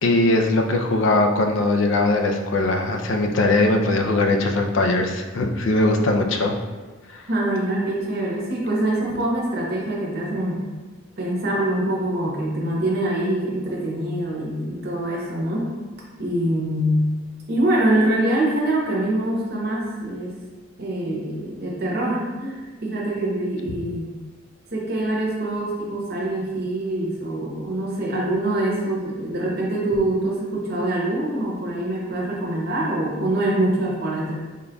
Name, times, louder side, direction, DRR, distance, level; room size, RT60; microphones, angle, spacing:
voice 1, 0.0-6.6, left 2 dB, 65° left, 4 dB, 0.4 m, -20 dB
voice 2, 7.3-10.7 11.2-15.7 16.2-17.1 17.5-20.4 20.8-24.1 24.7-34.3, right 1 dB, 50° right, -3 dB, 0.7 m, -24 dB
3.8 x 3.4 x 2.2 m, 1.3 s
head